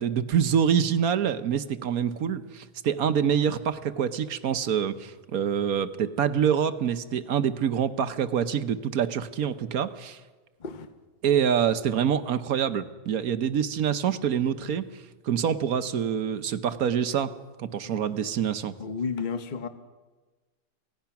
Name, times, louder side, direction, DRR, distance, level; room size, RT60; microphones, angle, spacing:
voice 1, 0.0-10.2 11.2-17.3 17.6-18.7, right 8 dB, 60° right, 11 dB, 1.3 m, -26 dB
voice 2, 18.8-19.7, left 5 dB, 30° left, 9 dB, 1.1 m, -32 dB
28.0 x 17.0 x 5.9 m, 1.3 s
omnidirectional pair, 1.8 m